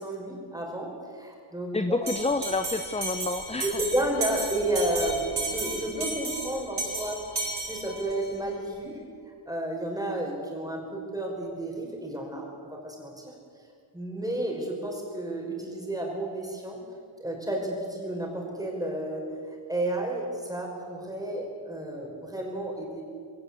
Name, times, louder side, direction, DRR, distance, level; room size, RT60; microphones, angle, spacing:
voice 1, 0.0-2.1 3.6-9.0 9.3-13.3 13.9-16.8 17.2-19.3 19.7-23.0, right 1 dB, 5° right, -1 dB, 5.6 m, -32 dB
voice 2, 1.7-3.8, left 3 dB, 15° left, 9 dB, 0.8 m, -29 dB
Bell, 2.1-8.3, right 2 dB, 50° right, 7.3 m, -34 dB
21.5 x 18.0 x 8.4 m, 2.3 s
wide cardioid pair, 105°, 49 cm